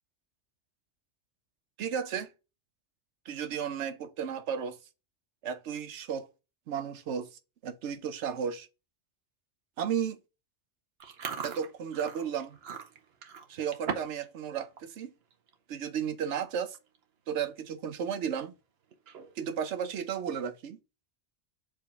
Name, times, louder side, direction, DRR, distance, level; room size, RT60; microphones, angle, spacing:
voice 1, 1.8-2.3 3.3-4.8 5.4-6.3 6.7-8.7 9.8-10.2 11.4-12.6 13.5-15.1 15.7-16.8 17.3-18.5 19.4-20.8, right 8 dB, 85° right, 1.0 m, -34 dB
Chewing mastication, 11.0-14.3 14.6-14.9 15.3-15.5 16.3-16.4 16.6-17.0 17.4-17.5 18.9-19.5, right 6 dB, 65° right, 1.0 m, -39 dB
4.6 x 3.8 x 5.6 m
omnidirectional pair, 1.2 m